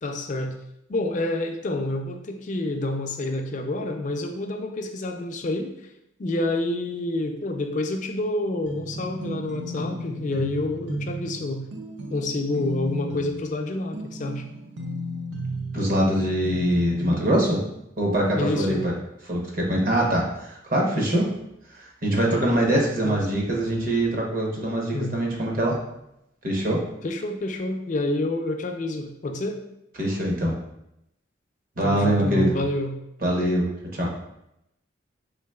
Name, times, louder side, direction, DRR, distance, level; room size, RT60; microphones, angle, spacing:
voice 1, 0.0-0.5 0.9-5.7 6.2-11.6 12.1-14.4 18.3-18.8 23.0-23.2 24.9-25.2 27.0-29.6 31.8-33.0, left 2 dB, 40° left, 4 dB, 0.4 m, -28 dB
sound 1, 8.7-17.5, equal, 65° right, 0.5 m, -34 dB
voice 2, 15.7-17.6 18.0-18.9 19.3-21.3 21.8-25.8 26.4-26.8 30.0-30.6 31.8-32.5 33.2-33.7 33.9-34.1, right 1 dB, 45° right, -1 dB, 0.8 m, -23 dB
3.8 x 3.5 x 2.3 m, 0.82 s
head